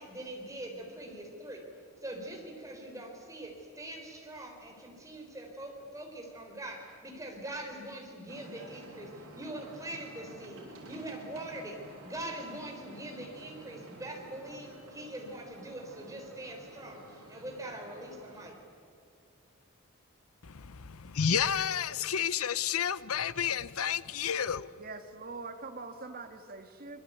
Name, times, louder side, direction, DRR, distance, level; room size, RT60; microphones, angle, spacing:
voice 1, 0.0-1.7 2.0-18.6, right 1 dB, 15° right, 4.2 m, -43 dB
sound 1, 8.3-18.5, right 1 dB, 85° right, 6.4 m, -51 dB
voice 2, 20.4-24.7, left 8 dB, 80° left, 0.8 m, -31 dB
voice 3, 24.8-27.0, right 3 dB, 45° right, 1.9 m, -43 dB
25.5 x 21.5 x 9.5 m
head